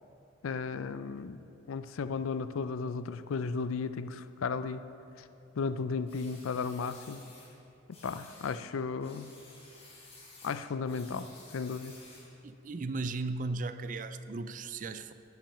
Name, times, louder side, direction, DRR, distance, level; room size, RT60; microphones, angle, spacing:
voice 1, 0.4-4.8 5.2-5.3 5.6-7.3 8.0-9.3 10.4-12.0, left 5 dB, 85° left, 12 dB, 0.4 m, -35 dB
sound 1, 6.1-7.5 7.9-8.6 9.0-12.4, left 2 dB, 30° left, 1.9 m, -54 dB
voice 2, 12.4-15.1, right 3 dB, 40° right, 11 dB, 0.4 m, -36 dB
11.5 x 6.1 x 7.2 m, 2.8 s
head